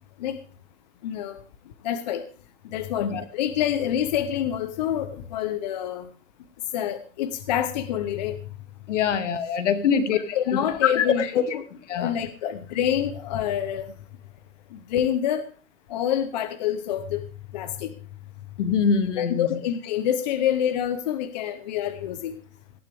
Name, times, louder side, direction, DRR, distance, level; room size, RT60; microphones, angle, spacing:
voice 1, 1.0-1.4 1.8-2.3 2.6-6.1 6.7-8.4 9.9-10.0 10.3-11.2 12.0-13.9 14.7-15.5 15.9-17.2 17.5-18.0 19.2-22.4, left 10 dB, 30° left, 12 dB, 0.7 m, -27 dB
voice 2, 8.9-11.4 11.7-12.2 18.6-19.6, left 7 dB, 60° left, 9 dB, 2.3 m, -24 dB
18.5 x 12.5 x 3.4 m, 0.40 s
hypercardioid pair, 160°, 41 cm